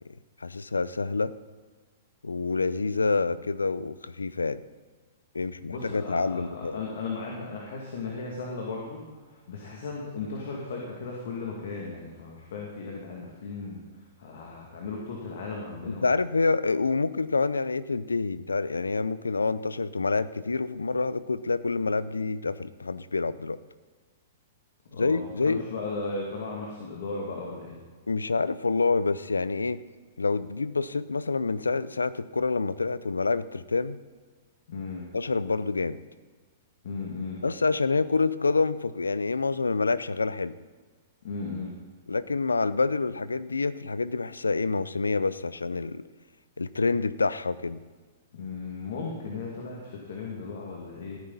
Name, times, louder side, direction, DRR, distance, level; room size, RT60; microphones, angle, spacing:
voice 1, 0.4-1.3 2.2-4.6 5.3-6.8 15.9-23.6 25.0-25.6 28.1-29.8 30.2-34.0 35.1-36.0 37.4-40.5 42.1-46.0 46.6-47.8, left 4 dB, 90° left, 17 dB, 0.5 m, -27 dB
voice 2, 5.7-13.8 14.2-16.1 24.9-25.2 25.5-27.8 34.7-35.1 36.8-37.4 41.2-41.7 48.3-51.2, left 4 dB, 65° left, -1 dB, 2.4 m, -36 dB
16.5 x 9.7 x 4.1 m, 1.4 s
hypercardioid pair, 115°, 0 cm